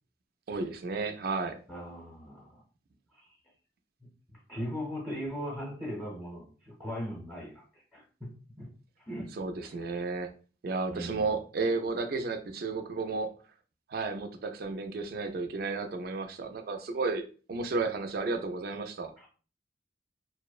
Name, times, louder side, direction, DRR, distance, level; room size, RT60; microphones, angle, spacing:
voice 1, 0.5-1.6 9.4-10.3 10.6-13.3 13.9-19.1, right 3 dB, 55° right, 6 dB, 0.3 m, -33 dB
voice 2, 1.7-2.6 3.1-3.4 4.3-8.7 9.1-9.3 9.9-10.0 10.9-11.4 19.2-19.3, equal, ahead, -4 dB, 0.7 m, -39 dB
2.6 x 2.0 x 2.3 m, 0.38 s
head